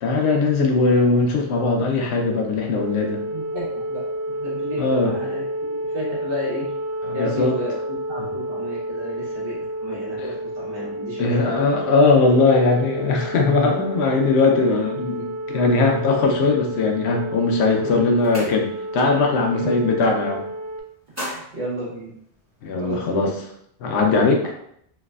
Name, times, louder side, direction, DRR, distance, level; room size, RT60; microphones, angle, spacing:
voice 1, 0.0-3.2 4.8-5.1 7.1-7.6 10.2-10.3 11.2-18.7 18.9-20.4 22.6-23.3 23.8-24.5, left 3 dB, 85° left, 2 dB, 0.9 m, -19 dB
sound 1, 2.7-20.8, right 1 dB, 45° left, 0.5 m, -30 dB
voice 2, 3.3-4.0 4.3-5.4 5.7-6.7 7.1-7.8 8.1-11.6 17.8-18.3 19.4-19.7 21.2-22.1 22.8-23.3, equal, 60° right, -5 dB, 1.1 m, -32 dB
sound 2, 17.3-17.6 17.9-19.1 19.4-19.7 20.0-20.5 20.9-22.7, equal, 15° right, 1.0 m, -37 dB
3.1 x 2.0 x 2.2 m, 0.70 s
omnidirectional pair, 1.1 m